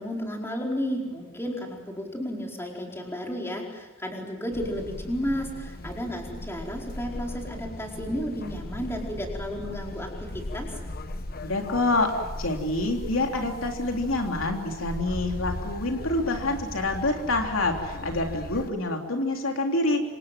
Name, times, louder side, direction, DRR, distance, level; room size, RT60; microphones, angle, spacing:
voice 1, 0.0-10.7, equal, 10° left, 0 dB, 4.7 m, -33 dB
sound 1, 4.5-18.7, left 1 dB, 45° left, 1.3 m, -38 dB
voice 2, 11.4-20.0, left 2 dB, 75° left, 3 dB, 3.4 m, -27 dB
27.0 x 27.0 x 7.6 m, 1.1 s
head